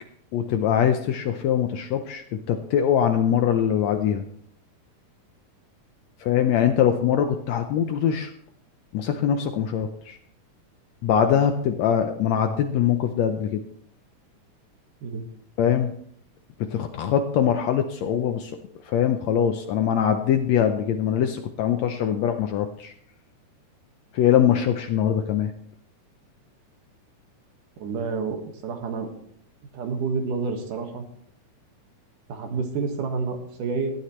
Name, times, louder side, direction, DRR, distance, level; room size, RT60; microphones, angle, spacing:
voice 1, 0.3-4.2 6.2-8.3 8.9-10.2 11.0-13.6 15.6-15.9 16.6-18.5 18.9-22.9 24.1-25.5, left 9 dB, 75° left, 6 dB, 1.7 m, -22 dB
voice 2, 27.8-29.1 29.7-31.0 32.3-33.9, right 4 dB, 75° right, 4 dB, 3.2 m, -29 dB
17.5 x 12.0 x 3.2 m, 0.65 s
omnidirectional pair, 3.7 m